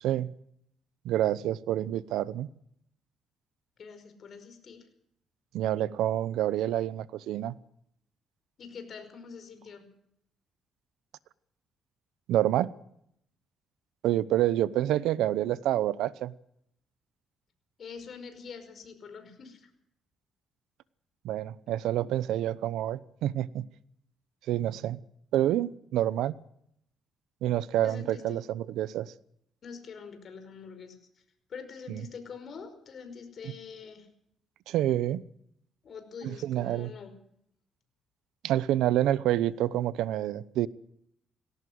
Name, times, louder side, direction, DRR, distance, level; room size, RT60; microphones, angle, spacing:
voice 1, 0.0-0.3 1.0-2.5 5.5-7.5 12.3-12.7 14.0-16.3 21.2-23.7 24.5-25.0 25.3-26.3 27.4-29.1 31.9-32.0 34.7-35.2 36.2-36.9 38.4-40.7, right 13 dB, 90° right, 18 dB, 0.8 m, -28 dB
voice 2, 3.8-4.8 8.6-9.8 17.8-19.7 27.8-28.4 29.6-31.0 31.5-34.1 35.8-37.1, left 6 dB, 55° left, 8 dB, 5.2 m, -45 dB
19.0 x 17.5 x 7.9 m, 0.72 s
cardioid pair, 90°, 0 cm